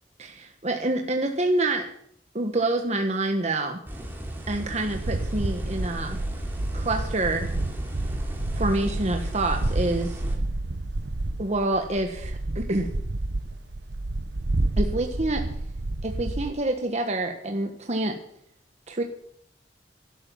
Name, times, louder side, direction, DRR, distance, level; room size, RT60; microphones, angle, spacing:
voice 1, 0.2-1.9 2.3-3.8 4.5-6.2 6.7-7.5 8.5-10.2 11.4-12.9 14.8-15.4 16.0-18.2 18.9-19.0, right 2 dB, 40° right, 4 dB, 1.4 m, -27 dB
sound 1, 3.9-10.4, equal, 10° right, 3.2 m, -35 dB
sound 2, 4.9-16.5, right 2 dB, 75° right, 0.9 m, -30 dB
12.5 x 11.5 x 7.1 m, 0.68 s
head